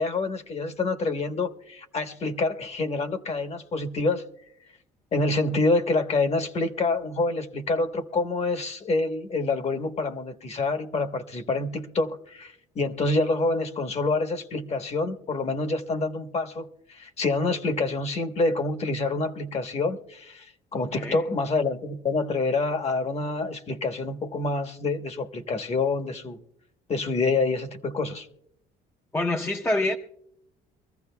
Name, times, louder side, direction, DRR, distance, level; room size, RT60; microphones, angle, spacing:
voice 1, 0.0-4.2 5.1-26.4 26.9-28.3, left 3 dB, 40° left, 1.1 m, -27 dB
voice 2, 20.7-21.2 29.1-30.0, left 2 dB, 15° left, 0.6 m, -26 dB
23.5 x 14.5 x 2.2 m
cardioid pair, 110°, 17 cm